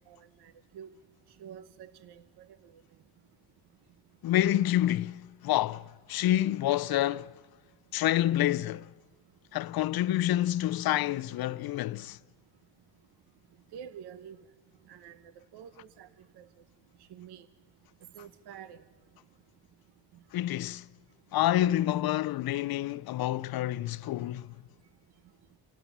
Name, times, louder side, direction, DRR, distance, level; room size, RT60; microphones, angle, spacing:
voice 1, 0.1-0.9 1.4-2.8 13.7-14.4 14.9-15.2 15.5-16.1 16.4-16.5 17.1-17.5 18.1-18.8, right 8 dB, 65° right, 1.0 m, -48 dB
voice 2, 4.2-7.4 7.9-8.9 9.5-12.2 20.3-20.8 21.3-24.5, left 13 dB, 60° left, 0.6 m, -28 dB
27.5 x 18.0 x 7.2 m
cardioid pair, 115°, 42 cm